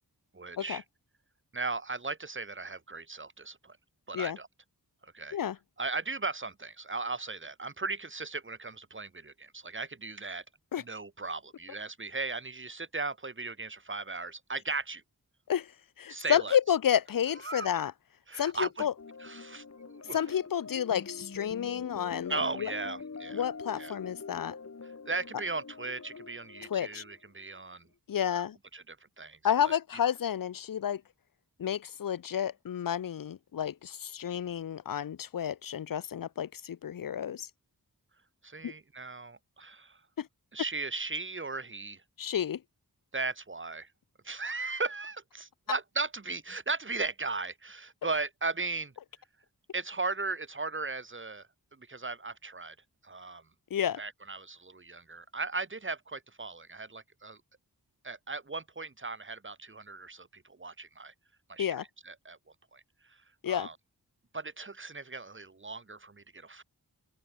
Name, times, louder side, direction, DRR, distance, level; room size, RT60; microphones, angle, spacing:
voice 1, 0.3-0.8 1.5-3.8 4.1-4.5 5.0-5.4 5.8-10.4 10.8-15.0 16.1-16.6 17.4-17.7 18.3-18.9 19.2-20.3 22.3-23.5 23.8-24.0 24.8-27.9 28.3-28.4 28.7-29.8 38.4-40.0 40.5-42.0 43.1-43.9 44.2-48.9 49.7-52.8 53.0-53.5 54.0-57.4 58.0-61.1 61.5-62.4 62.7-63.8 64.3-66.6, right 3 dB, 30° right, 1.1 m, -37 dB
voice 2, 16.0-17.9 18.4-18.9 20.1-22.7 23.3-24.5 26.7-27.0 28.1-28.6 29.4-31.0 31.6-37.5 38.6-38.7 40.2-40.3 42.2-42.6 53.7-54.0 61.6-61.8 63.4-63.7, left 9 dB, 60° left, 0.5 m, -30 dB
sound 1, 19.0-27.6, left 4 dB, 40° left, 1.2 m, -45 dB
open air
wide cardioid pair, 85°, 39 cm